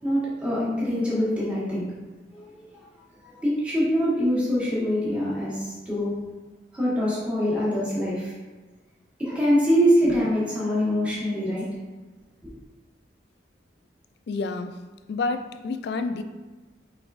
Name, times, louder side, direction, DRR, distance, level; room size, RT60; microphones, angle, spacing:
voice 1, 0.0-1.8 2.3-2.8 3.2-6.1 6.7-8.3 9.2-11.7 12.4-12.5, equal, 5° right, -9 dB, 1.5 m, -24 dB
voice 2, 14.3-14.8 15.1-16.2, left 3 dB, 65° left, 8 dB, 0.3 m, -29 dB
4.4 x 4.1 x 2.5 m, 1.3 s
head